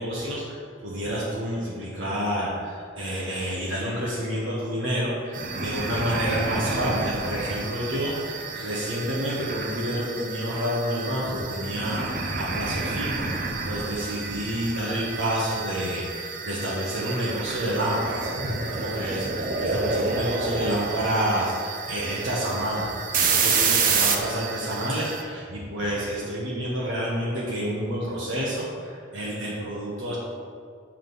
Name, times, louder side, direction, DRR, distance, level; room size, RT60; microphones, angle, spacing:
voice 1, 0.0-22.9 23.2-30.2, equal, 75° right, -5 dB, 1.4 m, -29 dB
sound 1, 5.3-25.2, right 4 dB, 45° right, 0.6 m, -29 dB
7.5 x 3.7 x 6.3 m, 2.2 s
head